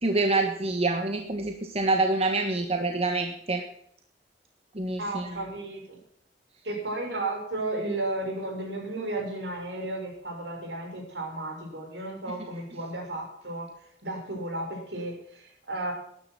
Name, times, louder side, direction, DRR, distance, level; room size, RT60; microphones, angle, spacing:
voice 1, 0.0-3.6 4.7-5.3, right 2 dB, 35° right, 4 dB, 1.4 m, -26 dB
voice 2, 5.0-6.0 6.6-13.7 14.0-15.9, right 2 dB, 70° right, 1 dB, 6.0 m, -33 dB
13.0 x 10.5 x 5.8 m, 0.68 s
head